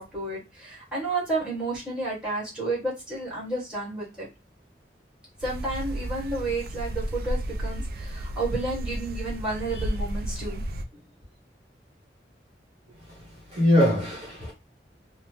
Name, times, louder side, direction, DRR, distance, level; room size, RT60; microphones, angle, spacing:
voice 1, 0.0-4.3 5.4-11.0, right 2 dB, 5° right, 1.3 m, -31 dB
sound 1, 5.4-10.8, right 1 dB, 55° right, 0.3 m, -32 dB
voice 2, 12.9-14.5, left 1 dB, 30° right, 0.9 m, -24 dB
2.9 x 2.0 x 3.1 m
head